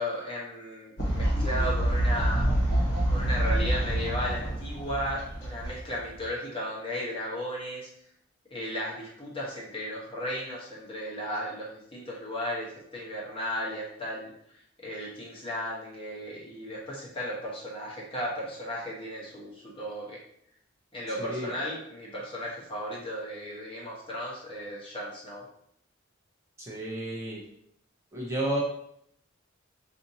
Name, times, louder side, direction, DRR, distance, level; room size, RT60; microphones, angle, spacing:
voice 1, 0.0-2.4 3.1-7.9 8.5-14.3 14.8-20.2 20.9-25.5, equal, 25° left, -5 dB, 1.0 m, -35 dB
Fowl, 1.0-6.3, right 1 dB, 55° left, 1.2 m, -27 dB
voice 2, 21.2-21.6 26.6-27.4 28.1-28.6, right 1 dB, 15° right, -6 dB, 0.6 m, -32 dB
4.2 x 2.6 x 2.7 m, 0.72 s
head